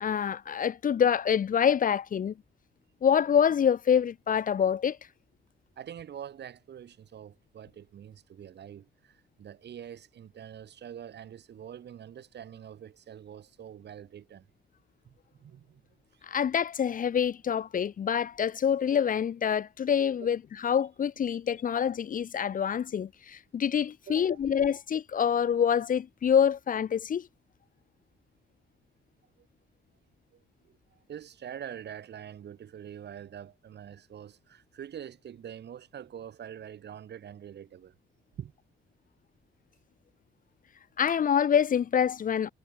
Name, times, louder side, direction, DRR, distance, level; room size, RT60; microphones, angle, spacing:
voice 1, 0.0-2.3 3.0-5.0 16.2-27.3 41.0-42.5, left 8 dB, 45° left, 1.0 m, -26 dB
voice 2, 5.8-14.4 15.1-15.8 16.1-16.2 20.2-20.3 21.3-21.4 24.1-24.4 29.4-29.5 30.3-30.4 30.7-37.9 38.4-38.5, right 9 dB, 60° right, 7.4 m, -45 dB
wide cardioid pair, 155°, 19 cm